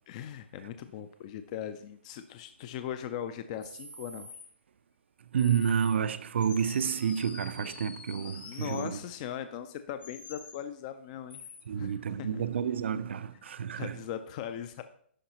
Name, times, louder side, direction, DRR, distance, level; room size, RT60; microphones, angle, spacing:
voice 1, 0.1-4.3 8.4-11.4 11.8-12.4 13.8-14.8, left 9 dB, 35° left, 0.4 m, -39 dB
sound 1, 3.6-4.5 5.4-5.9 6.4-8.9 10.0-10.6 11.3-11.6, left 4 dB, 65° left, 1.9 m, -47 dB
voice 2, 5.3-9.0 11.7-14.0, right 7 dB, 75° right, 0.5 m, -30 dB
11.5 x 4.8 x 3.0 m
hypercardioid pair, 150°, 6 cm